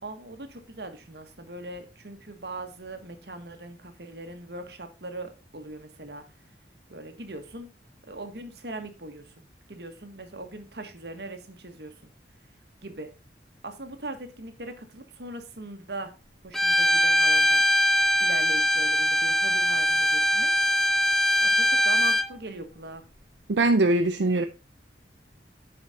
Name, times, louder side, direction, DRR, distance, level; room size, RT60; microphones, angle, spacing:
voice 1, 0.0-6.2 6.9-7.7 8.1-9.3 9.7-12.1 12.8-13.1 13.6-16.1 16.4-17.6 18.2-20.5 21.4-23.1, right 2 dB, 65° right, 1.5 m, -40 dB
Bowed string instrument, 16.5-22.3, equal, ahead, 0.5 m, -22 dB
voice 2, 23.5-24.4, right 2 dB, 85° right, 0.6 m, -21 dB
8.8 x 5.1 x 4.2 m
head